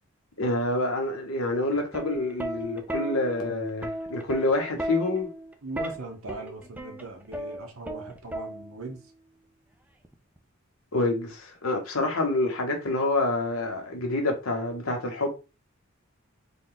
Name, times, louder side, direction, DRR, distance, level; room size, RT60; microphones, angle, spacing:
voice 1, 0.4-5.3 10.9-15.3, left 2 dB, 80° left, 1.2 m, -27 dB
Plucked string instrument, 1.7-9.0 10.0-10.4, right 1 dB, 5° right, 0.4 m, -36 dB
voice 2, 5.6-9.1, right 2 dB, 85° right, 1.1 m, -39 dB
3.7 x 2.3 x 3.9 m
head